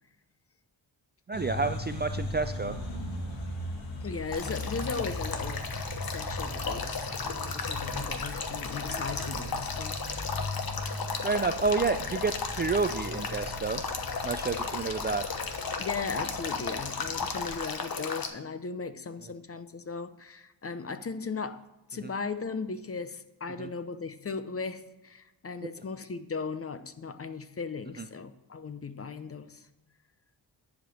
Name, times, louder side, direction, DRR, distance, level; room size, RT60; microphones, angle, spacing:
sound 1, 1.3-17.6, left 1 dB, 80° left, 2.2 m, -39 dB
voice 1, 1.3-2.8 11.2-13.8 14.2-15.2 23.6-23.7 28.0-28.1, right 4 dB, 25° right, 9 dB, 0.4 m, -29 dB
voice 2, 4.0-5.7 6.0-10.2 15.8-21.6 21.9-29.7, left 4 dB, 30° left, 12 dB, 0.7 m, -37 dB
Male speech man speaking / Stream / Trickle dribble, 4.3-18.3, left 5 dB, 50° left, 1.2 m, -35 dB
10.5 x 5.2 x 7.8 m, 1.0 s
wide cardioid pair, 100°, 45 cm